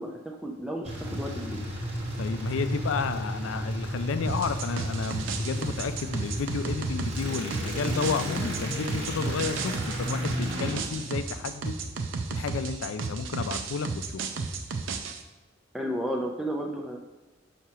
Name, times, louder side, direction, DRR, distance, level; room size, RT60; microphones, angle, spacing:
voice 1, 0.0-1.6 15.7-17.0, equal, ahead, 0 dB, 0.4 m, -33 dB
sound 1, 0.8-12.0, equal, 30° right, 1.3 m, -33 dB
voice 2, 2.2-11.8 12.3-13.9, left 5 dB, 80° left, 10 dB, 0.4 m, -31 dB
sound 2, 4.3-15.2, right 4 dB, 75° right, 0.5 m, -33 dB
6.1 x 2.8 x 5.6 m, 1.1 s
head